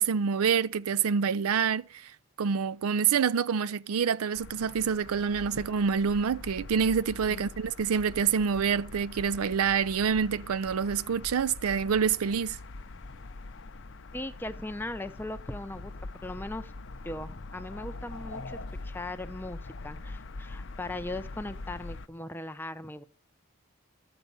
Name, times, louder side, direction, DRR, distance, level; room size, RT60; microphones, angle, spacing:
voice 1, 0.0-2.1 2.4-12.6, right 6 dB, 85° right, 0.5 m, -27 dB
sound 1, 4.3-22.1, left 2 dB, 55° left, 0.6 m, -43 dB
voice 2, 14.1-15.9 16.2-16.7 17.0-23.0, left 2 dB, 10° left, 0.5 m, -39 dB
12.0 x 8.0 x 5.4 m
head